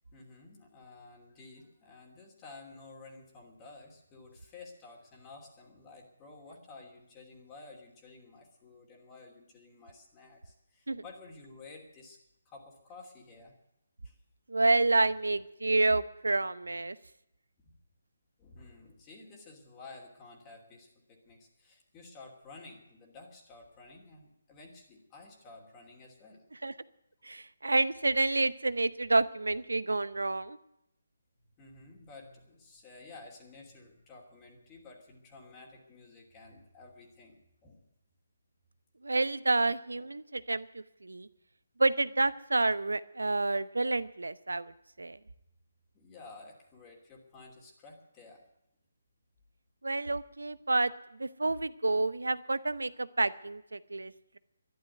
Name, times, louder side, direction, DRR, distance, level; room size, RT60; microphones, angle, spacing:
voice 1, 0.1-12.2 12.4-13.5 14.0-14.2 17.6-17.8 18.4-26.4 31.6-37.4 37.6-37.8 45.9-48.4, left 3 dB, 20° left, -1 dB, 2.9 m, -52 dB
voice 2, 14.5-17.0 26.6-26.7 27.2-30.6 39.0-41.3 41.8-44.7 45.0-45.2 49.8-54.4, right 2 dB, 80° right, 16 dB, 0.8 m, -29 dB
12.0 x 11.0 x 9.3 m, 0.83 s
figure-of-eight pair, 145°, 0 cm